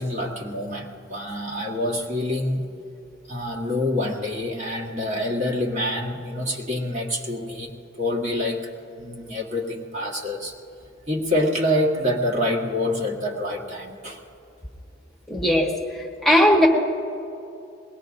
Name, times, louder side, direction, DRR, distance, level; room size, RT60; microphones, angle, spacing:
voice 1, 0.0-2.6 3.3-7.7 8.0-8.7 9.0-10.5 11.1-14.2, left 1 dB, 40° right, -2 dB, 1.7 m, -26 dB
voice 2, 15.3-15.7 16.2-16.7, equal, ahead, -2 dB, 1.3 m, -17 dB
22.0 x 19.5 x 2.6 m, 2.7 s
head